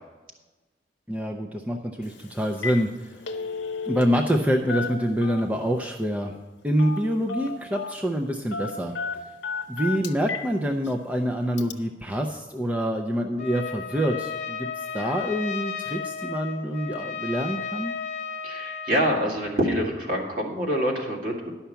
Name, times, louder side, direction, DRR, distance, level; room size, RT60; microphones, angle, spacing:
voice 1, 1.1-3.2 3.9-6.3 6.6-8.9 9.7-17.9, equal, 10° right, 2 dB, 0.5 m, -26 dB
Telephone, 2.0-2.2 2.5-2.8 3.1-4.4 4.7-5.6 6.8-7.0 7.3-8.0 8.5-10.5 10.9-11.0 11.6-11.7, left 4 dB, 85° left, 0.8 m, -32 dB
Trumpet, 13.4-19.3, left 6 dB, 40° left, 0.8 m, -34 dB
voice 2, 18.4-21.5, equal, 50° right, -1 dB, 2.0 m, -26 dB
11.5 x 5.7 x 6.9 m, 1.2 s
head